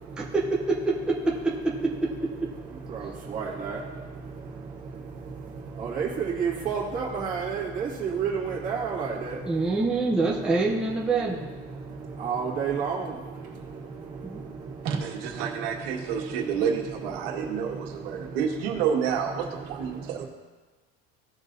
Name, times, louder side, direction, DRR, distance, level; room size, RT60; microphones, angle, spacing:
voice 1, 0.2-2.3 9.5-11.5 14.2-14.4, right 3 dB, 5° right, -4 dB, 0.7 m, -26 dB
voice 2, 2.7-9.8 10.3-10.8 11.1-16.7 17.2-18.8 19.4-20.3, right 6 dB, 25° right, -4 dB, 1.9 m, -33 dB
voice 3, 14.8-20.3, right 7 dB, 75° right, 1 dB, 1.8 m, -29 dB
17.0 x 6.1 x 2.7 m, 1.3 s
cardioid pair, 175°, 30 cm